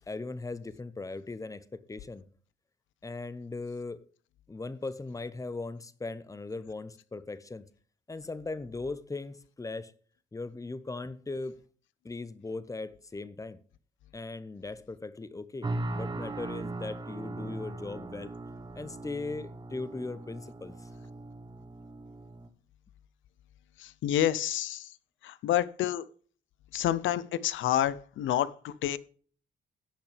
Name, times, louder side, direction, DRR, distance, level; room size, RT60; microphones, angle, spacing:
voice 1, 0.1-2.2 3.0-4.0 4.5-7.6 8.1-9.9 10.3-11.6 12.0-13.6 14.1-18.3 18.7-20.9, left 3 dB, 15° left, 0.8 m, -39 dB
sound 1, 15.6-22.5, right 2 dB, 25° right, 1.1 m, -39 dB
voice 2, 23.8-24.9 25.2-26.0 26.7-29.0, left 12 dB, 75° left, 0.6 m, -29 dB
17.0 x 5.9 x 3.4 m
cardioid pair, 90°, 20 cm